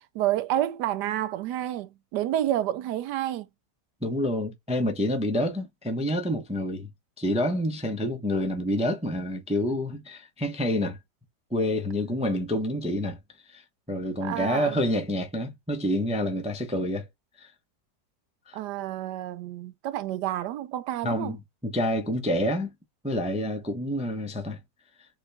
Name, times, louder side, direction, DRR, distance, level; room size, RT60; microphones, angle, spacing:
voice 1, 0.1-3.5 14.2-14.8 18.5-21.3, right 13 dB, 90° right, 1.2 m, -29 dB
voice 2, 4.0-6.9 7.2-11.0 11.5-13.2 13.5-13.6 13.9-17.1 17.4-17.5 18.5-18.6 21.0-21.4 21.6-22.7 23.0-24.6, left 1 dB, 10° right, 0.3 m, -28 dB
4.1 x 3.6 x 3.3 m
omnidirectional pair, 1.8 m